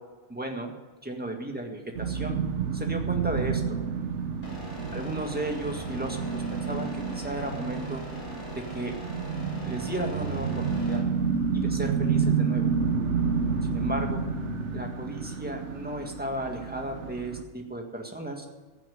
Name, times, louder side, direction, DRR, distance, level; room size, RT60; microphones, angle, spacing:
voice 1, 0.3-0.7 1.0-2.4 2.7-3.8 4.9-8.0 8.6-9.0 9.6-11.0 11.5-12.7 13.7-14.2 14.7-18.5, right 1 dB, 5° right, 2 dB, 1.8 m, -34 dB
sound 1, 1.9-17.4, right 5 dB, 70° right, 1.3 m, -29 dB
sound 2, 4.4-11.0, left 1 dB, 65° left, 5.2 m, -41 dB
16.0 x 7.3 x 9.3 m, 1.3 s
omnidirectional pair, 1.3 m